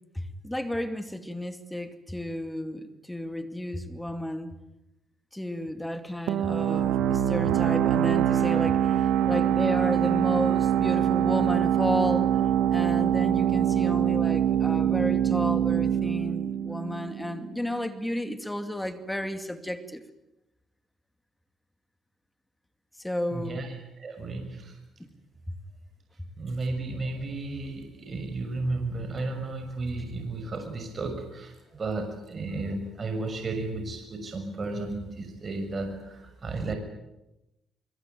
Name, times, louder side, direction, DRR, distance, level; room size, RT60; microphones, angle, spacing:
voice 1, 0.1-4.5 5.3-12.4 12.7-20.0 23.0-23.6 25.0-25.1 25.5-25.6, left 1 dB, 5° left, 9 dB, 2.5 m, -32 dB
sound 1, 6.3-17.7, right 10 dB, 90° right, 1.7 m, -24 dB
voice 2, 23.3-23.7 24.0-24.7 26.4-36.7, right 2 dB, 40° right, 5 dB, 6.4 m, -33 dB
24.5 x 23.5 x 9.4 m, 0.93 s
cardioid pair, 90°, 0 cm